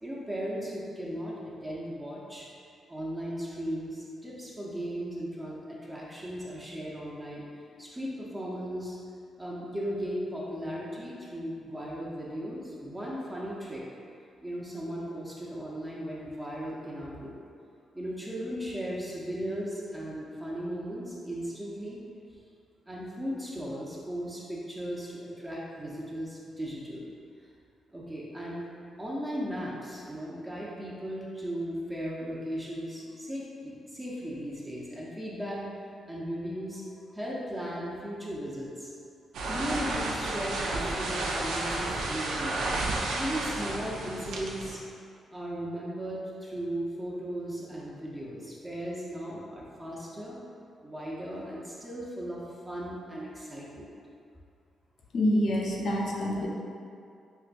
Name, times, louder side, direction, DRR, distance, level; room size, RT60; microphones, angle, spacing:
voice 1, 0.0-2.5 2.9-9.0 9.4-13.8 14.4-17.3 17.9-22.0 22.9-27.1 27.9-28.6 29.0-35.6 36.1-38.9 39.5-42.6 43.1-44.8 45.3-50.4 50.8-53.9, equal, 15° right, -6 dB, 0.6 m, -37 dB
sound 1, 39.3-44.8, right 2 dB, 85° right, 0.4 m, -32 dB
voice 2, 55.1-56.5, left 1 dB, 60° left, -2 dB, 0.5 m, -26 dB
4.5 x 2.2 x 2.5 m, 2.4 s
cardioid pair, 65°, 0 cm